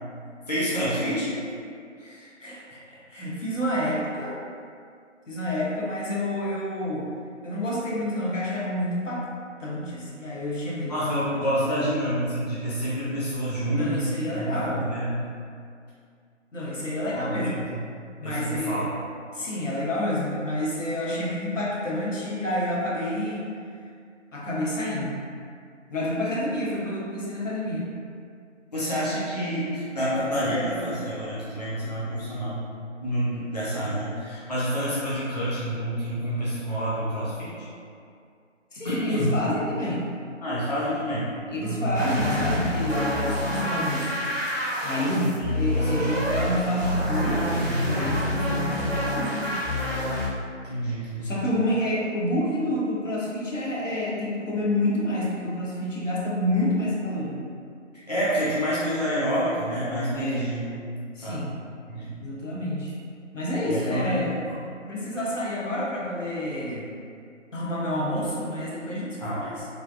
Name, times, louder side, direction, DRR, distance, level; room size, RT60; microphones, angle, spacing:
voice 1, 0.5-1.3 10.9-14.1 14.4-15.2 17.1-17.2 17.7-17.8 18.2-18.9 28.7-32.6 33.0-37.5 38.8-39.3 40.4-41.3 41.6-42.0 45.0-45.5 45.8-46.2 50.6-51.3 58.1-60.6 61.2-61.4 61.9-62.2 63.6-64.2 69.2-69.4, equal, 35° left, -11 dB, 0.5 m, -28 dB
voice 2, 2.0-4.4 5.3-7.1 7.4-9.3 9.6-11.9 13.6-14.8 16.5-17.7 18.2-18.8 19.3-23.5 24.3-25.2 25.9-27.9 38.7-40.0 41.5-44.3 44.8-49.5 51.2-57.4 60.1-60.5 61.2-61.5 62.2-62.9 63.3-64.4 64.8-66.9 67.5-69.7, left 1 dB, 80° left, -6 dB, 0.9 m, -29 dB
sound 1, 41.9-50.3, left 1 dB, 90° right, 0.9 m, -27 dB
3.2 x 2.3 x 2.5 m, 2.3 s
figure-of-eight pair, 160°, 37 cm